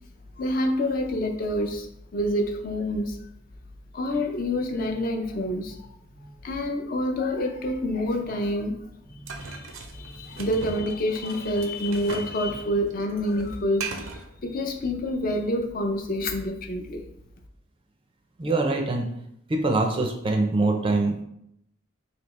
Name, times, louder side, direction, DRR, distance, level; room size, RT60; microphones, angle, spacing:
voice 1, 0.4-1.9 2.1-3.2 3.9-5.9 6.4-8.8 9.4-14.1 14.4-17.0, left 1 dB, 45° left, 4 dB, 0.5 m, -27 dB
voice 2, 9.2-9.5 10.2-10.3 18.4-19.1 19.5-21.2, right 2 dB, 25° right, 3 dB, 0.4 m, -24 dB
sound 1, 9.3-12.4 12.7-14.3, right 5 dB, 80° right, 0.5 m, -38 dB
3.3 x 2.8 x 4.0 m, 0.76 s
head